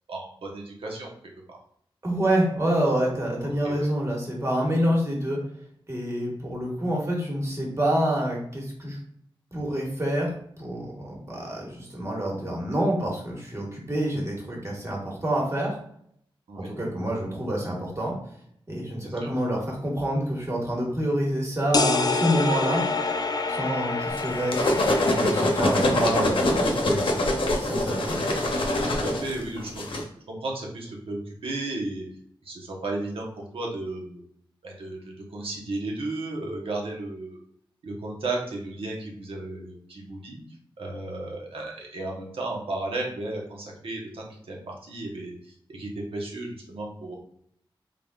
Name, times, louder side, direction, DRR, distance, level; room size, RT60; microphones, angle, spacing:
voice 1, 0.1-1.1 3.4-3.9 16.5-16.7 19.0-19.4 29.0-29.8 30.3-32.0 32.4-34.2 34.6-37.4 37.8-40.4 40.8-47.2, right 2 dB, 85° right, -2 dB, 1.1 m, -34 dB
voice 2, 2.0-5.4 5.9-9.0 9.5-10.3 10.6-15.8 16.6-18.1 18.7-22.8 23.5-28.2, right 1 dB, 30° right, -2 dB, 1.4 m, -27 dB
sound 1, 21.7-27.3, left 4 dB, 45° left, 0.3 m, -28 dB
sound 2, 24.2-30.0, left 1 dB, 70° left, 0.7 m, -24 dB
3.8 x 3.5 x 2.4 m, 0.67 s
wide cardioid pair, 80°, 9 cm